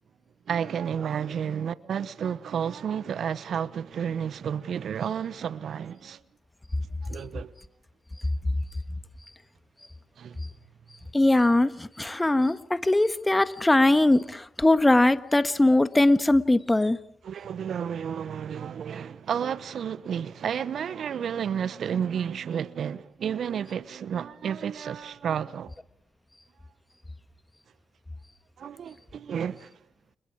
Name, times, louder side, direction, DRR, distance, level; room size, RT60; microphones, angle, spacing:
voice 1, 0.5-6.2 7.1-7.5 10.2-10.4 17.2-25.7 28.6-29.7, right 8 dB, 60° right, 1.0 m, -31 dB
voice 2, 11.1-17.0, left 2 dB, 15° left, 1.6 m, -21 dB
29.5 x 29.5 x 4.8 m
hypercardioid pair, 40°, 0 cm